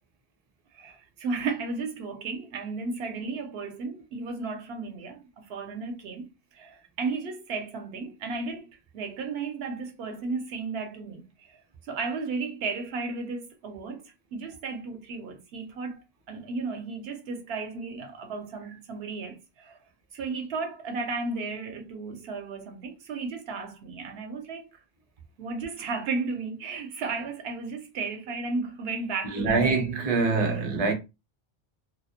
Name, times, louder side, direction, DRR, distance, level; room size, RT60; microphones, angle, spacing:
voice 1, 0.7-6.3 6.5-19.8 20.1-24.7 25.4-29.6 30.4-30.6, right 4 dB, 75° right, 0.8 m, -34 dB
voice 2, 29.2-30.9, right 4 dB, 40° right, 0.6 m, -24 dB
2.2 x 2.0 x 2.7 m
omnidirectional pair, 1.1 m